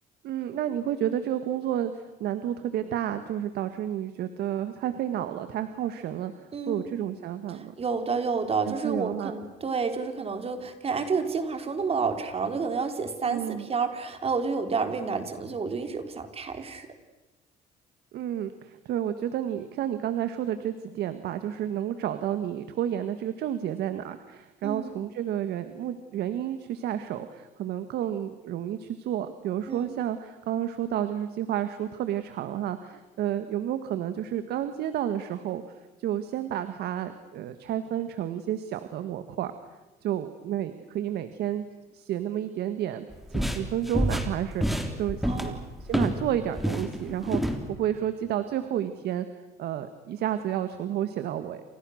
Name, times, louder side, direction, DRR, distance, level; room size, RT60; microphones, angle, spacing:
voice 1, 0.2-7.7 8.6-9.3 13.3-13.7 18.1-39.5 40.0-41.6 41.9-49.3 49.6-51.6, right 10 dB, 70° right, 10 dB, 1.6 m, -31 dB
voice 2, 6.5-6.9 7.8-16.9 24.6-24.9 29.7-29.9 45.2-45.7, right 5 dB, 35° right, 7 dB, 3.5 m, -30 dB
sound 1, 43.1-46.2 46.5-47.6, equal, ahead, 3.5 m, -28 dB
30.0 x 28.0 x 6.5 m, 1.1 s
cardioid pair, 110°, 17 cm